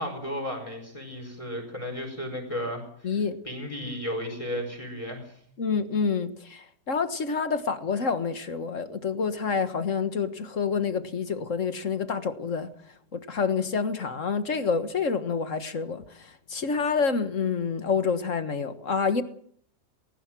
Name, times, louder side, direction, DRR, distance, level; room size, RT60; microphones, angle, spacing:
voice 1, 0.0-3.2 3.4-5.4, equal, 20° left, 4.9 m, -34 dB
voice 2, 3.0-3.4 5.6-12.7 13.1-19.2, left 5 dB, 50° left, 1.8 m, -28 dB
20.0 x 19.0 x 7.6 m
omnidirectional pair, 1.8 m